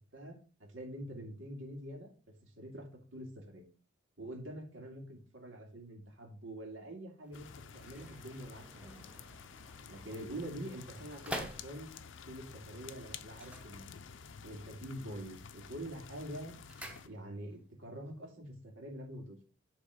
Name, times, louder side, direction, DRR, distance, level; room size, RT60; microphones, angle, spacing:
voice 1, 0.1-2.1 2.4-2.8 3.1-3.7 4.2-7.5 7.7-9.0 9.9-11.9 12.3-14.0 14.4-16.5 17.0-19.4, right 1 dB, 85° right, 1 dB, 2.5 m, -45 dB
sound 1, 7.2-12.2 13.3-14.4 14.7-15.2 15.6-17.6 17.9-18.0, equal, 5° right, 0.9 m, -48 dB
sound 2, 7.3-17.1, left 6 dB, 80° left, 0.6 m, -51 dB
10.5 x 3.6 x 5.0 m, 0.37 s
head